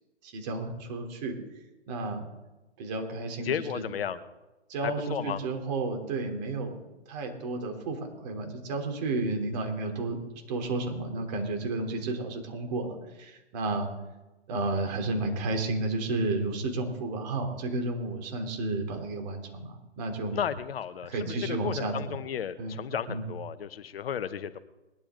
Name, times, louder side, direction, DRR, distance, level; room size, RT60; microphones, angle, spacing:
voice 1, 0.2-1.4 1.9-2.3 2.8-3.8 4.7-10.2 10.5-13.9 14.5-20.4 21.0-22.2 22.6-22.8 23.1-23.3, right 2 dB, 40° right, 3 dB, 3.7 m, -32 dB
voice 2, 3.4-4.2 4.8-5.4 20.3-24.6, left 8 dB, 60° left, 14 dB, 1.1 m, -33 dB
21.0 x 11.5 x 3.9 m, 1.1 s
figure-of-eight pair, 125°, 33 cm